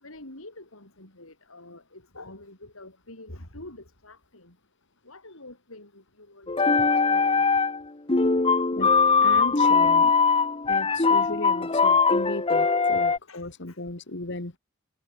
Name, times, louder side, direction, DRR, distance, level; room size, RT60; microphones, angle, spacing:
voice 1, 0.0-4.5 5.1-7.4 13.3-13.8, left 2 dB, 85° left, 7.4 m, -46 dB
sound 1, 6.5-7.8 8.1-13.2, left 4 dB, 25° left, 1.1 m, -21 dB
voice 2, 9.2-10.1 10.7-14.6, left 2 dB, 60° left, 2.2 m, -36 dB
head